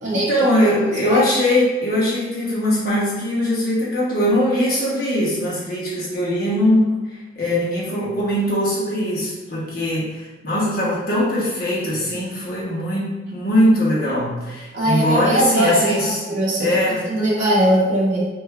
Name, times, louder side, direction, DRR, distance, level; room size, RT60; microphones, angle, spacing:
voice 1, 0.1-7.0 7.4-16.2 16.6-17.1, left 1 dB, 55° left, -6 dB, 1.4 m, -21 dB
voice 2, 14.7-16.7 17.1-18.3, right 1 dB, 40° right, -8 dB, 0.8 m, -20 dB
6.1 x 3.0 x 2.5 m, 1.2 s
head